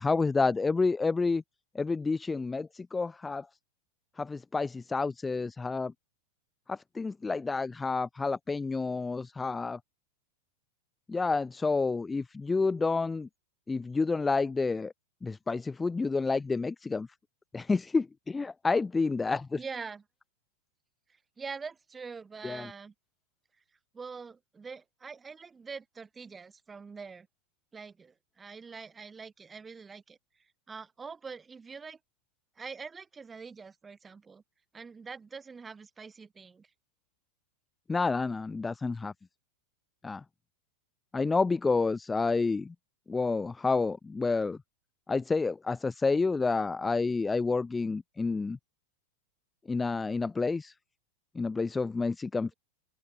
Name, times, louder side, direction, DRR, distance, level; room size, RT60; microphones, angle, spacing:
voice 1, 0.0-1.4 1.8-3.5 4.2-5.9 6.7-9.8 11.1-13.3 13.7-14.9 15.2-17.1 17.5-19.6 22.4-22.7 37.9-39.1 40.0-40.2 41.1-42.7 43.1-44.6 45.1-48.6 49.7-50.7 51.4-52.5, left 4 dB, 10° left, 0.5 m, -29 dB
voice 2, 19.5-20.0 21.4-22.9 23.9-27.3 27.7-30.2 30.7-32.0 32.6-34.4 34.7-36.7, right 5 dB, 15° right, 3.4 m, -44 dB
open air
figure-of-eight pair, 90°, 0 cm